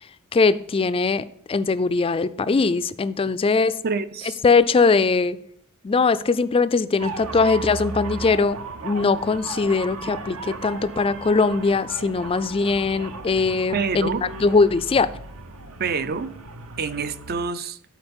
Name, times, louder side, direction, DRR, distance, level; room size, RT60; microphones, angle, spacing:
voice 1, 0.3-3.7 4.4-5.4 5.8-8.6 8.8-14.1 14.4-15.1, left 4 dB, 25° left, 0.4 m, -21 dB
voice 2, 3.8-4.4 13.7-14.2 15.8-16.4 16.8-17.8, right 5 dB, 45° right, 0.5 m, -27 dB
sound 1, 7.0-17.4, right 3 dB, 70° right, 0.9 m, -36 dB
11.5 x 4.3 x 5.3 m
head